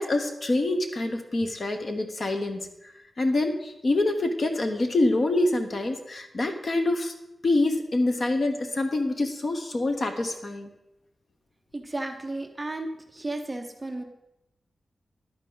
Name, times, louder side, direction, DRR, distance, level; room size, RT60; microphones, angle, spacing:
voice 1, 0.0-2.7 3.2-7.1 7.4-10.7, left 2 dB, 40° left, 6 dB, 1.0 m, -26 dB
voice 2, 11.7-12.9 13.1-14.0, right 2 dB, 15° right, 4 dB, 0.8 m, -33 dB
11.0 x 9.4 x 3.9 m, 0.90 s
wide cardioid pair, 175°, 0 cm